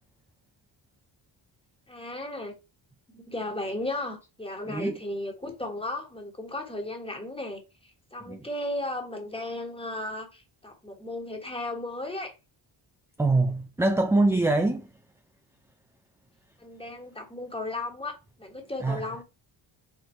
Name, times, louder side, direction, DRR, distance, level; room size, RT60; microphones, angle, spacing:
voice 1, 1.9-2.5 3.1-12.3 16.6-19.2, left 1 dB, 10° left, 1.3 m, -35 dB
voice 2, 4.6-5.0 8.3-8.5 13.2-15.0 18.8-19.2, right 2 dB, 5° right, 0.3 m, -24 dB
4.5 x 2.6 x 4.4 m
cardioid pair, 105°, 49 cm